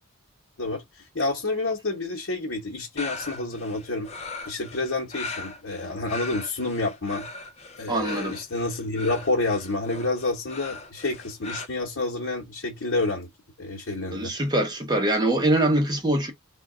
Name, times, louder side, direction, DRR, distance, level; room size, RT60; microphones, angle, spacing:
voice 1, 0.6-4.1 4.5-7.3 7.8-13.3 13.6-14.3, left 2 dB, 60° left, 1.0 m, -29 dB
sound 1, 3.0-11.7, left 3 dB, 30° left, 0.4 m, -39 dB
voice 2, 7.9-8.4 14.1-16.3, right 1 dB, 20° right, 0.7 m, -23 dB
3.6 x 2.2 x 3.6 m
head